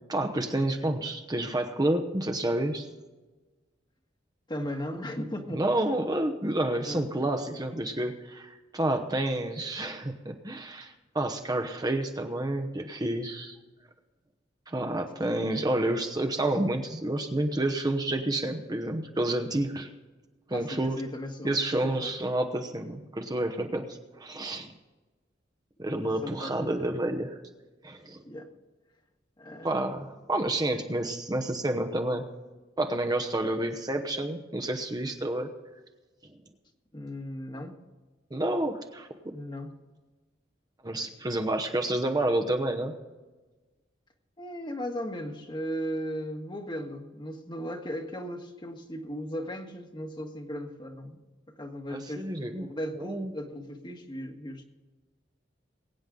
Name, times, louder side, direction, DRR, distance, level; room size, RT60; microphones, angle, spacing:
voice 1, 0.1-2.8 5.5-13.6 14.7-19.9 20.5-21.0 21.4-24.7 25.8-27.4 27.8-28.2 29.6-32.2 32.8-35.5 38.3-39.1 40.8-42.9 51.9-52.7 53.0-53.3, right 1 dB, 20° right, 5 dB, 1.0 m, -29 dB
voice 2, 4.5-5.7 6.9-7.0 15.2-15.6 20.5-22.2 25.9-26.9 28.2-28.5 29.4-29.8 36.9-37.7 39.3-39.7 44.4-51.2 51.6-54.6, equal, 25° left, 4 dB, 1.5 m, -37 dB
22.5 x 9.1 x 3.8 m, 1.2 s
head